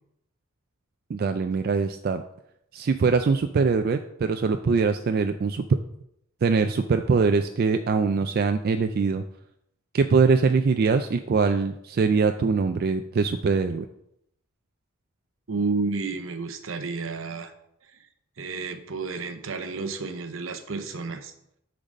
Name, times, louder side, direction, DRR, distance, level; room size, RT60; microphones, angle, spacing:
voice 1, 1.1-2.2 2.7-5.6 6.4-9.2 9.9-13.9, right 4 dB, 45° right, 7 dB, 0.3 m, -23 dB
voice 2, 15.5-17.5 17.9-18.0 18.4-21.3, right 4 dB, 75° right, 8 dB, 0.8 m, -31 dB
6.7 x 4.0 x 6.3 m, 0.76 s
head